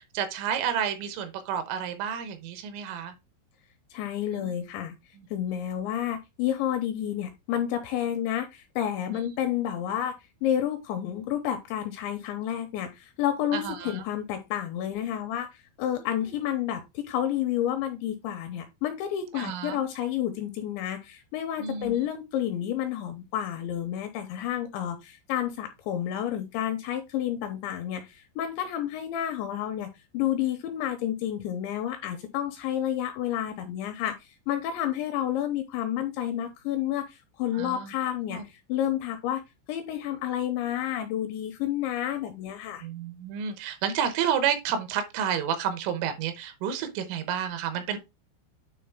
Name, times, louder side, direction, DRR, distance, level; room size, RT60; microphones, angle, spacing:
voice 1, 0.0-3.1 4.3-4.5 5.5-5.6 9.1-9.3 13.5-14.0 19.3-19.8 21.6-22.0 37.5-37.9 38.2-38.5 42.8-48.0, right 8 dB, 80° right, 3.6 m, -30 dB
voice 2, 3.9-5.0 5.3-10.1 10.4-29.9 30.1-39.4 39.7-42.9, left 11 dB, 85° left, 2.7 m, -30 dB
9.5 x 3.7 x 3.6 m
omnidirectional pair, 5.8 m